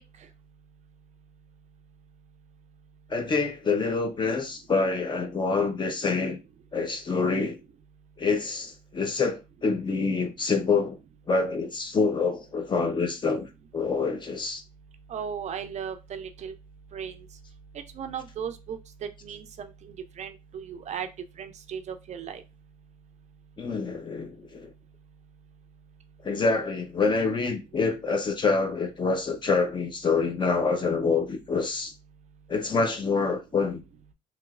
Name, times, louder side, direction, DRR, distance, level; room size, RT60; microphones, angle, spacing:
voice 1, 3.1-6.4 6.7-7.6 8.2-11.0 11.3-13.5 13.7-14.6 23.6-24.7 26.2-31.9 32.5-33.8, left 4 dB, 30° left, 0.6 m, -26 dB
voice 2, 15.1-16.5 16.9-17.2 17.7-21.1 21.4-22.4, right 7 dB, 45° right, 0.4 m, -36 dB
3.0 x 2.9 x 2.3 m
cardioid pair, 110°, 17 cm